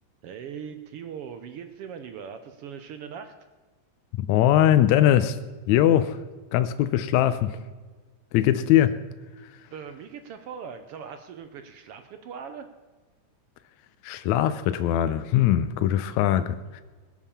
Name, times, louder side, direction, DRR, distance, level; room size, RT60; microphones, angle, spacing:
voice 1, 0.2-3.3 9.7-12.7 16.6-16.8, right 7 dB, 75° right, 9 dB, 1.4 m, -40 dB
voice 2, 4.1-5.4 5.7-6.2 6.5-7.6 8.3-9.0 9.4-9.5 14.0-16.8, left 11 dB, 80° left, 11 dB, 1.9 m, -21 dB
20.5 x 7.4 x 7.0 m, 1.4 s
omnidirectional pair, 3.5 m